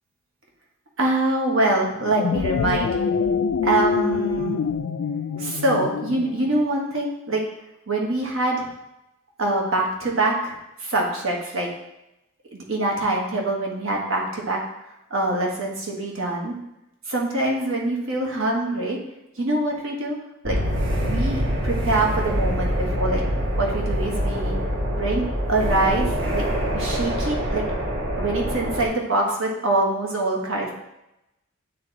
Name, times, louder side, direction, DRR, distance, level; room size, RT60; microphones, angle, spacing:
voice 1, 1.0-3.0 3.6-4.7 5.4-7.4 7.9-8.7 9.4-10.5 10.8-11.7 12.5-14.6 15.1-16.5 17.1-19.0 19.4-20.2 20.4-20.6 21.0-23.2 23.6-24.6 25.0-25.2 25.5-27.6 28.2-30.7, right 2 dB, 75° right, -1 dB, 1.3 m, -24 dB
sound 1, 2.0-6.6, left 5 dB, 65° left, 0.3 m, -25 dB
sound 2, 20.4-28.9, equal, 60° right, 1.4 m, -25 dB
8.3 x 2.9 x 3.9 m, 0.90 s
head